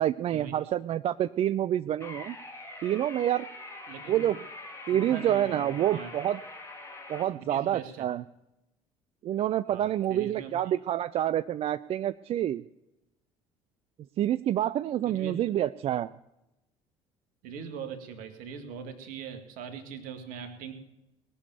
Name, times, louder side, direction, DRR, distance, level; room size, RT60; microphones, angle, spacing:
voice 1, 0.0-2.4 2.8-3.5 4.1-4.4 4.9-6.4 7.1-8.2 9.2-12.6 14.2-16.1, right 11 dB, 35° right, 15 dB, 0.4 m, -27 dB
sound 1, 2.0-7.2, left 2 dB, 15° left, 3.2 m, -44 dB
voice 2, 3.9-4.3 4.9-6.2 7.3-8.1 9.6-10.7 15.0-15.3 17.4-20.7, right 6 dB, 55° right, 7 dB, 1.9 m, -41 dB
20.0 x 7.0 x 7.0 m, 0.92 s
figure-of-eight pair, 55°, 17 cm